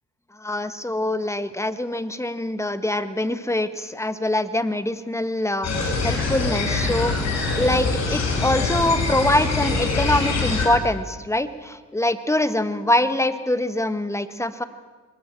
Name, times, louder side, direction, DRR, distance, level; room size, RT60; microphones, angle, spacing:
voice 1, 0.4-5.7 6.0-14.6, left 1 dB, 10° left, 11 dB, 1.6 m, -24 dB
sound 1, 5.6-10.7, left 3 dB, 60° left, 6.0 m, -24 dB
22.5 x 20.5 x 7.6 m, 1.3 s
cardioid pair, 90°, 30 cm